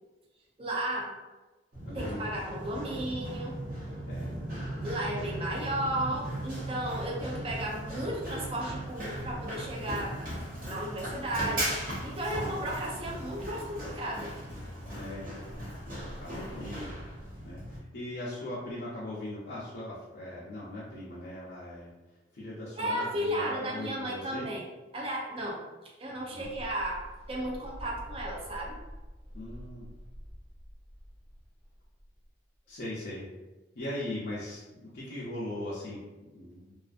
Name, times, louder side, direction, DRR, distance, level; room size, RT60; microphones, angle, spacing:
voice 1, 0.6-1.1 1.9-3.6 4.8-10.3 10.6-14.3 22.8-24.6 24.9-28.8, right 1 dB, 30° right, -2 dB, 0.5 m, -34 dB
Run, 1.7-17.8, equal, 50° right, 0.8 m, -39 dB
sound 1, 1.7-14.0, right 2 dB, 85° right, 0.7 m, -41 dB
voice 2, 1.9-2.2 4.1-4.3 7.3-7.5 12.4-12.6 15.0-15.3 16.2-17.0 17.4-21.9 22.3-24.5 26.3-26.5 29.3-29.9 32.7-33.3 33.8-36.7, left 1 dB, 60° left, -8 dB, 0.5 m, -39 dB
sound 2, 26.4-33.0, equal, 10° left, 0.8 m, -47 dB
2.4 x 2.4 x 2.4 m, 1.2 s
head